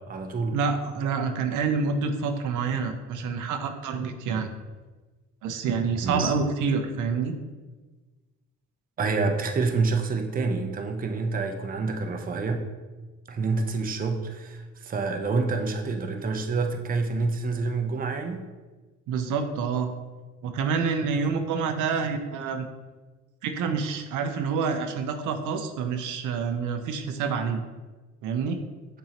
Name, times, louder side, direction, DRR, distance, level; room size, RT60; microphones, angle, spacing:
voice 1, 0.0-0.6 6.0-6.3 9.0-12.7 13.3-18.5, right 4 dB, 30° right, 5 dB, 0.5 m, -27 dB
voice 2, 0.5-4.5 5.4-7.3 19.1-19.9 20.4-22.7 23.4-27.6 28.2-28.6, right 5 dB, 85° right, 6 dB, 0.5 m, -27 dB
6.8 x 2.7 x 2.9 m, 1.3 s
cardioid pair, 90°, 30 cm